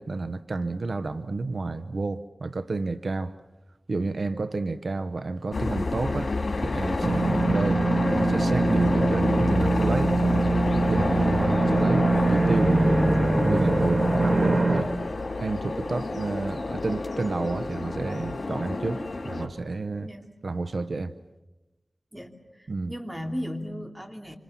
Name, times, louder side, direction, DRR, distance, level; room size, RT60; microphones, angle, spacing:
voice 1, 0.0-3.3 3.9-15.0 15.4-20.1 20.4-21.1 22.7-22.9, right 3 dB, 80° right, 0.8 m, -30 dB
sound 1, 5.5-19.5, left 2 dB, 80° left, 3.4 m, -28 dB
sound 2, 7.0-14.8, right 2 dB, 55° right, 1.7 m, -23 dB
voice 2, 7.1-7.4 20.0-20.3 22.1-24.4, equal, 15° right, 3.0 m, -36 dB
27.5 x 26.0 x 7.1 m
wide cardioid pair, 60°, 0 cm